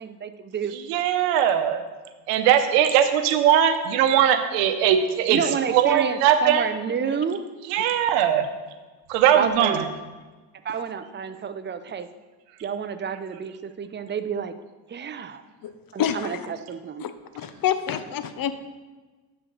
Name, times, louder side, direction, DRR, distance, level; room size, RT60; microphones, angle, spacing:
voice 1, 0.0-0.7 5.3-7.4 9.3-9.9 10.6-12.1 12.6-14.5 14.9-15.4 15.9-17.0, right 7 dB, 25° right, 10 dB, 0.5 m, -29 dB
voice 2, 0.7-1.8 2.3-6.7 7.7-8.5 9.1-9.9, right 9 dB, 85° right, 8 dB, 0.9 m, -20 dB
voice 3, 16.0-16.5 17.0-18.6, left 9 dB, 45° left, 11 dB, 0.7 m, -27 dB
11.5 x 4.5 x 3.9 m, 1.3 s
supercardioid pair, 85°, 47 cm